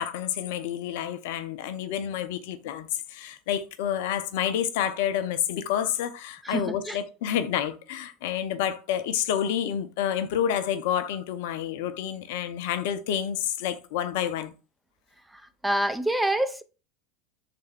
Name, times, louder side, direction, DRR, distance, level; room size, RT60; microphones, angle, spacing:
voice 1, 0.0-14.5, left 9 dB, 65° left, 0.5 m, -29 dB
voice 2, 6.4-7.0 15.6-16.6, right 1 dB, 5° right, 0.4 m, -26 dB
3.4 x 3.3 x 3.4 m
figure-of-eight pair, 80°, 0 cm